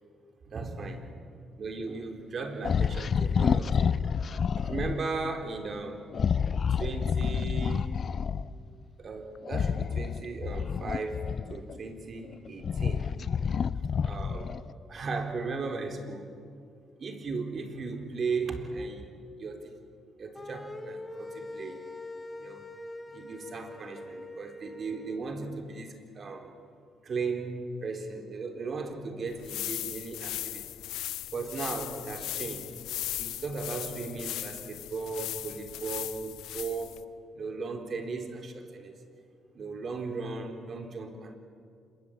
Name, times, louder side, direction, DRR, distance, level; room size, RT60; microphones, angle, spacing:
voice 1, 0.5-1.1 1.6-4.0 4.6-6.0 6.7-8.0 9.0-13.1 14.0-14.5 14.9-16.3 17.0-19.0 19.4-19.7 20.2-21.8 22.4-22.7 23.1-26.5 27.0-30.6 31.3-32.7 33.2-37.0 37.3-38.9 39.5-41.4, right 4 dB, 50° right, 5 dB, 3.9 m, -36 dB
sound 1, 2.6-5.0 6.1-8.5 9.4-11.8 12.3-14.7, left 6 dB, 50° left, 0.7 m, -28 dB
sound 2, 20.3-25.2, left 2 dB, 15° left, 2.4 m, -43 dB
sound 3, 29.3-37.0, left 14 dB, 90° left, 0.9 m, -38 dB
26.5 x 22.5 x 8.8 m, 2.4 s
cardioid pair, 90°, 0 cm